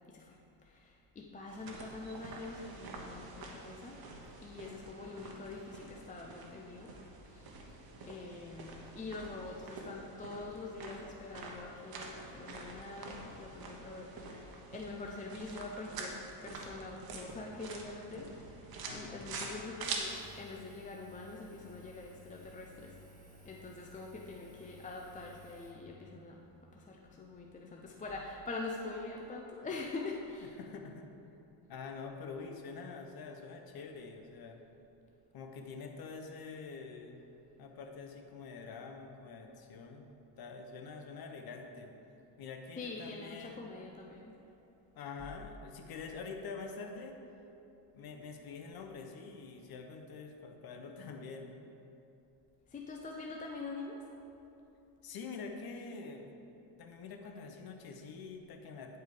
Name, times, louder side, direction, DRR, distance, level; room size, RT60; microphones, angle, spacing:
voice 1, 0.1-4.0 4.4-6.9 7.3-18.5 18.9-23.0 23.4-30.5 42.8-44.3 52.7-54.0, left 3 dB, 15° left, 0 dB, 0.6 m, -44 dB
sound 1, 1.5-20.0, right 3 dB, 45° right, 1.3 m, -47 dB
voice 2, 18.8-19.6 30.4-31.1 31.7-34.6 35.3-37.2 37.6-40.1 40.4-41.9 42.4-43.6 44.9-47.2 47.9-51.6 55.0-56.4 56.8-59.0, left 4 dB, 45° left, 4 dB, 1.1 m, -46 dB
Engine, 19.8-25.7, left 1 dB, 15° right, 1.9 m, -57 dB
9.6 x 4.6 x 5.0 m, 2.9 s
supercardioid pair, 100°, 49 cm